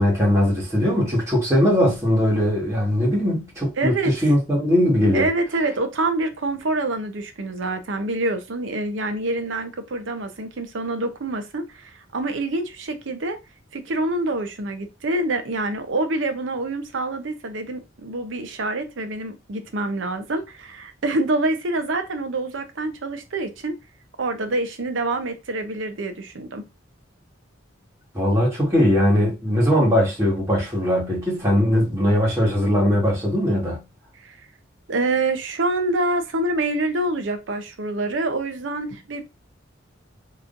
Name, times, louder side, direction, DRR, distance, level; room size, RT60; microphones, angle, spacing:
voice 1, 0.0-5.3 28.1-33.8, equal, 15° right, 1.7 m, -20 dB
voice 2, 3.8-4.1 5.1-13.4 13.7-23.8 24.2-26.7 34.2-34.5 34.9-39.2, right 2 dB, 70° right, 0.7 m, -26 dB
3.7 x 3.0 x 2.6 m
head